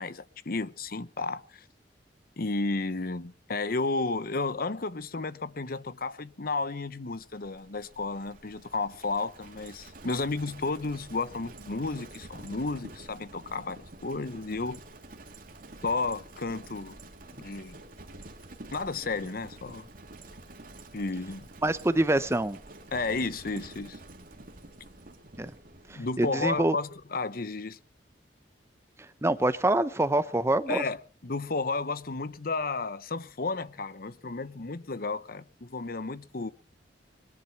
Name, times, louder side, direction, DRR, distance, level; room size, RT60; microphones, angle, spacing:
voice 1, 0.0-1.6 2.4-14.8 15.8-17.0 17.4-17.8 18.7-19.9 20.9-21.5 22.9-24.0 25.9-27.8 30.7-31.0 31.2-36.5, left 3 dB, 55° left, 0.9 m, -32 dB
Livestock farm animals working animals, 7.1-26.8, right 2 dB, 50° right, 2.6 m, -48 dB
voice 2, 21.6-22.6 25.4-25.5 25.9-26.7 29.2-30.8, right 1 dB, 15° right, 0.9 m, -25 dB
22.0 x 11.0 x 5.9 m
head